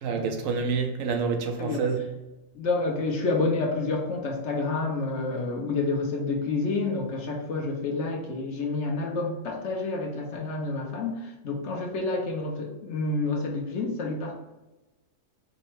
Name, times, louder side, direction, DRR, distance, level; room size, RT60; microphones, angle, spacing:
voice 1, 0.0-2.1, right 5 dB, 90° right, 1.1 m, -27 dB
voice 2, 2.5-14.3, left 3 dB, 65° left, 1.1 m, -29 dB
4.9 x 2.1 x 4.6 m
omnidirectional pair, 1.3 m